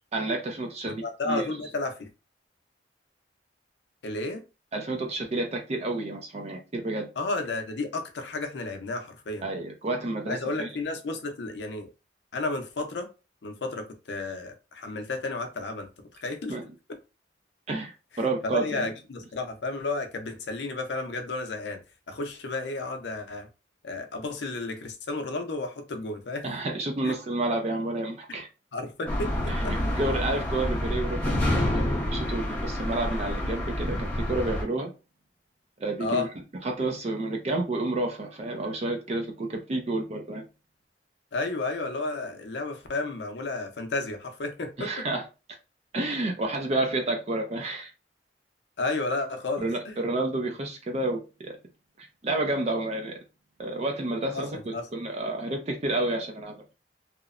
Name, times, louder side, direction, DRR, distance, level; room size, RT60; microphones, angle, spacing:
voice 1, 0.1-1.5 4.7-7.1 9.4-10.7 16.5-16.6 17.7-17.9 18.2-18.9 26.4-28.5 29.5-34.9 35.8-36.3 36.6-40.4 44.8-45.2 45.9-47.9 49.6-51.6 52.0-53.2 53.6-56.5, right 2 dB, 35° right, 0.4 m, -30 dB
voice 2, 0.8-2.1 4.0-4.4 7.2-9.5 10.3-11.9 12.3-13.1 13.4-15.9 16.2-16.6 16.9-17.0 18.5-21.8 22.1-23.5 23.8-26.4 27.0-27.1 28.7-30.0 36.0-36.3 41.3-45.1 48.8-50.0 54.3-54.9, left 3 dB, 70° left, 0.5 m, -32 dB
sound 1, 29.1-34.6, left 1 dB, 10° left, 0.8 m, -28 dB
2.9 x 2.0 x 2.4 m
head